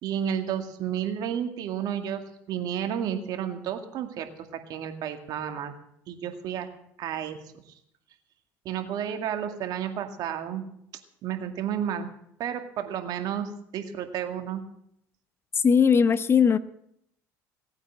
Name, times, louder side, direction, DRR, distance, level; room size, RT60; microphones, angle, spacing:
voice 1, 0.0-2.2 2.5-4.3 4.7-5.7 6.1-6.7 7.0-7.4 8.7-10.6 11.2-12.1 12.4-14.6, right 9 dB, 60° right, 6 dB, 2.1 m, -31 dB
voice 2, 15.6-16.6, left 6 dB, 35° left, 15 dB, 0.8 m, -19 dB
18.5 x 8.9 x 7.4 m, 0.74 s
supercardioid pair, 85°, 7 cm